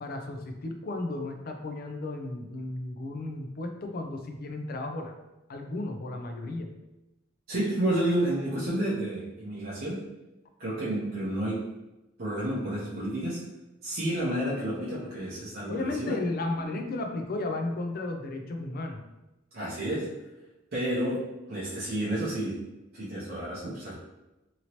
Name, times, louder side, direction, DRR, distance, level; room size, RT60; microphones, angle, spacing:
voice 1, 0.0-5.1 5.5-6.7 15.7-19.0, left 2 dB, 45° left, 4 dB, 0.4 m, -34 dB
voice 2, 7.5-10.0 10.6-11.7 12.2-13.5 13.8-16.2 19.5-20.2 20.7-22.6 22.9-23.9, right 1 dB, 50° right, -7 dB, 0.6 m, -30 dB
2.9 x 2.8 x 2.9 m, 0.99 s
head